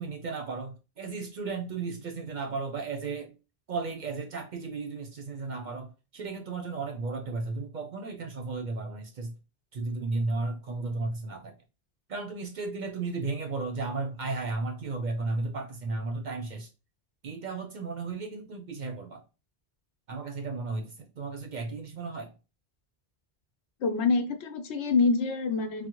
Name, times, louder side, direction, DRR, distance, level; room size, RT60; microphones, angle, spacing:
voice 1, 0.0-3.3 3.7-9.3 9.7-11.6 12.1-16.7 17.2-19.2 20.1-22.3, right 3 dB, 55° right, 0.6 m, -34 dB
voice 2, 23.8-25.9, left 4 dB, 90° left, 0.9 m, -26 dB
3.6 x 2.0 x 2.9 m
omnidirectional pair, 1.1 m